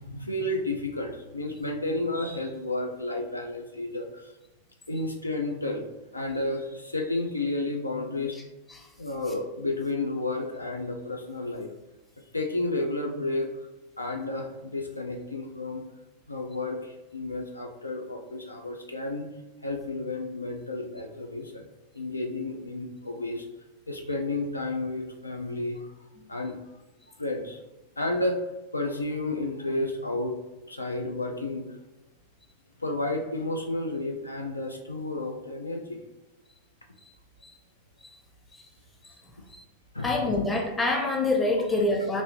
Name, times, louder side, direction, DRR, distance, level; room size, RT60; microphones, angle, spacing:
voice 1, 0.0-4.3 4.9-5.8 6.1-8.4 9.0-11.7 12.3-13.6 14.0-15.8 16.3-19.3 19.6-21.6 21.9-23.5 23.9-26.0 26.3-26.6 27.2-27.6 28.0-28.5 28.7-30.4 30.7-31.7 32.8-36.0 39.9-40.1, left 2 dB, 80° left, 3 dB, 0.3 m, -31 dB
voice 2, 40.0-42.2, left 2 dB, 15° left, 0 dB, 0.7 m, -26 dB
3.0 x 2.5 x 3.1 m, 1.0 s
figure-of-eight pair, 90°, 0 cm